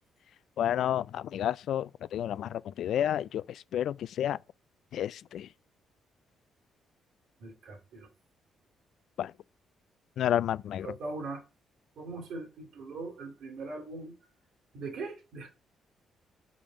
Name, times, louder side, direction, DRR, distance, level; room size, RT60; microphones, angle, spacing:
voice 1, 0.6-3.4 3.7-4.4 4.9-5.5 9.2-9.3 10.2-10.9, left 10 dB, 70° left, 0.3 m, -30 dB
voice 2, 7.4-8.1 10.8-11.4 12.0-14.1 14.7-15.5, right 3 dB, 75° right, 2.7 m, -40 dB
5.3 x 5.0 x 6.2 m
cardioid pair, 90°, 0 cm